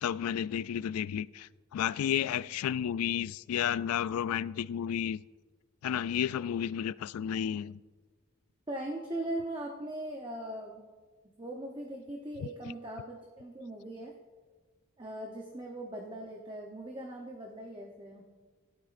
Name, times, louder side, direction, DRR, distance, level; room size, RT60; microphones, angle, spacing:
voice 1, 0.0-5.2 5.8-7.8, left 9 dB, 85° left, 0.3 m, -32 dB
voice 2, 8.7-10.9 11.4-14.2 15.0-18.2, right 1 dB, 20° right, 0.8 m, -40 dB
17.0 x 12.0 x 2.5 m
head